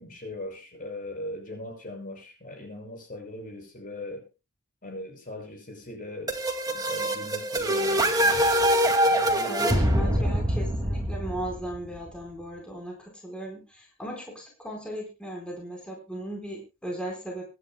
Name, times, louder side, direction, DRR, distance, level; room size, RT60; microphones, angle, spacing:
voice 1, 0.0-4.3 4.8-6.4 6.7-8.4 9.0-10.4, left 1 dB, 45° left, 6.1 m, -39 dB
sound 1, 6.3-11.9, right 1 dB, 20° right, 2.2 m, -24 dB
voice 2, 9.5-17.4, right 1 dB, 5° left, 4.5 m, -37 dB
24.5 x 11.0 x 2.2 m
head